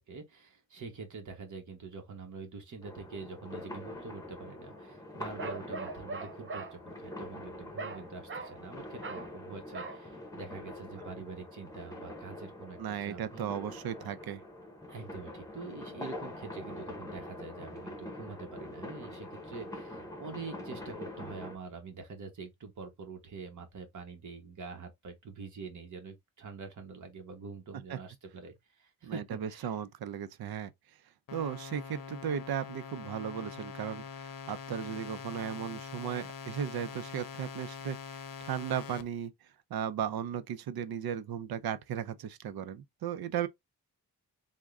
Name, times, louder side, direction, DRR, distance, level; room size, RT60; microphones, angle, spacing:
voice 1, 0.0-13.5 14.9-29.8, right 4 dB, 55° right, 1.1 m, -45 dB
sound 1, 2.8-21.6, left 1 dB, 10° left, 0.8 m, -44 dB
Bark, 5.4-6.8 7.8-8.0 8.3-8.6 9.0-9.3 9.7-10.0, right 3 dB, 35° right, 0.5 m, -40 dB
voice 2, 12.8-14.4 27.9-28.0 29.0-30.7 31.3-39.3 39.7-43.5, right 8 dB, 85° right, 0.5 m, -36 dB
sound 2, 31.3-39.0, left 6 dB, 65° left, 0.6 m, -44 dB
3.6 x 2.2 x 3.4 m
wide cardioid pair, 160°, 36 cm